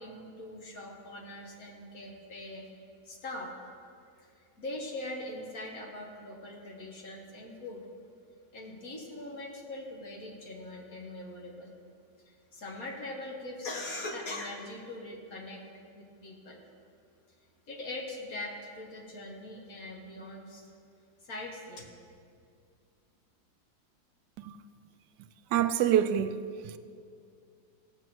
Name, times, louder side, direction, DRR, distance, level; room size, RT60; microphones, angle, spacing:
voice 1, 0.0-2.6 3.1-3.5 4.2-7.8 8.5-11.7 12.3-15.6 15.9-16.6 17.7-20.7 21.2-21.8, left 2 dB, 50° left, 1.9 m, -41 dB
voice 2, 25.5-26.8, right 10 dB, 75° right, 1.1 m, -27 dB
16.5 x 7.3 x 6.1 m
omnidirectional pair, 2.0 m